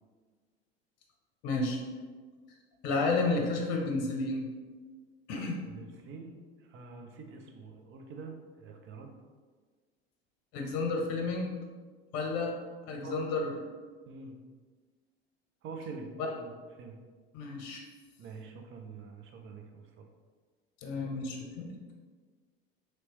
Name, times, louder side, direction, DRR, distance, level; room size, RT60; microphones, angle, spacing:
voice 1, 1.4-1.8 2.8-4.5 5.3-5.6 10.5-11.5 12.1-12.6 12.9-13.6 17.3-17.8 20.8-21.7, left 3 dB, 55° left, 1 dB, 0.7 m, -31 dB
voice 2, 5.6-9.1 13.0-13.2 14.1-14.4 15.6-17.0 18.2-20.0, right 4 dB, 40° right, 4 dB, 0.6 m, -46 dB
3.0 x 3.0 x 3.0 m, 1.5 s
hypercardioid pair, 75°, 31 cm